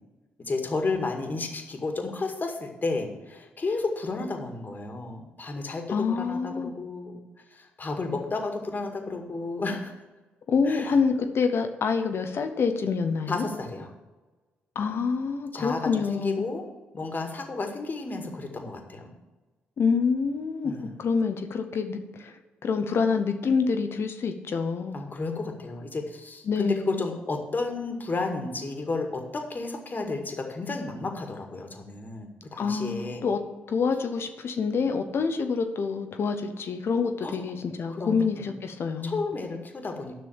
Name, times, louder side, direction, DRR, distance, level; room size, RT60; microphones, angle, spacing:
voice 1, 0.4-7.2 7.5-10.0 10.7-10.9 13.3-13.9 15.5-16.6 16.9-19.1 20.6-21.0 24.9-33.3 37.2-37.6 37.9-38.5 39.0-40.1, left 3 dB, 35° left, 4 dB, 2.0 m, -32 dB
voice 2, 5.9-6.7 10.5-13.4 14.7-16.4 19.8-20.7 21.0-22.3 22.6-25.0 26.5-27.0 32.6-33.4 33.7-39.2, left 5 dB, 50° left, 7 dB, 1.0 m, -27 dB
10.0 x 6.1 x 7.2 m, 1.2 s
hypercardioid pair, 40°, 5 cm